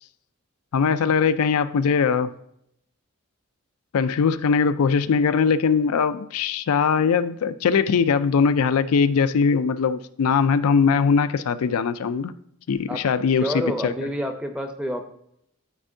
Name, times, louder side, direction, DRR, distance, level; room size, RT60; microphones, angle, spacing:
voice 1, 0.7-2.3 3.9-12.3 12.7-13.9, left 5 dB, 85° left, 12 dB, 0.4 m, -21 dB
voice 2, 13.4-15.0, equal, 5° right, 5 dB, 0.6 m, -28 dB
12.0 x 4.4 x 2.7 m, 0.74 s
head